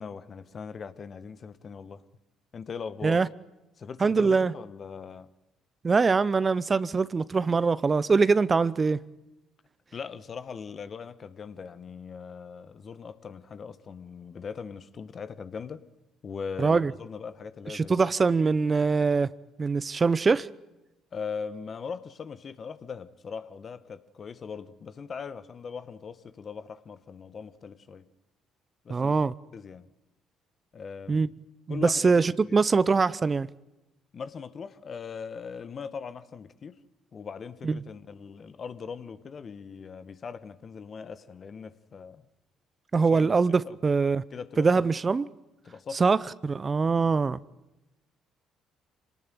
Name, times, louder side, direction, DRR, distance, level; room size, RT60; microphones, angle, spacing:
voice 1, 0.0-2.0 2.5-3.2 3.8-5.3 9.9-15.8 16.2-17.9 21.1-28.0 28.8-29.2 29.5-29.9 30.7-31.2 31.7-32.1 32.4-32.5 34.1-36.8 37.1-42.2 43.0-43.3 43.6-43.8 44.3-44.8 45.6-46.0, left 6 dB, 45° left, 1.5 m, -40 dB
voice 2, 4.0-4.5 5.8-9.0 16.6-16.9 17.7-19.3 19.6-20.5 28.9-29.3 31.1-31.3 31.7-33.5 37.6-37.8 42.9-44.2 44.6-45.2 46.0-47.4, right 4 dB, 35° right, 0.8 m, -23 dB
26.5 x 18.5 x 9.4 m
hypercardioid pair, 55°, 0 cm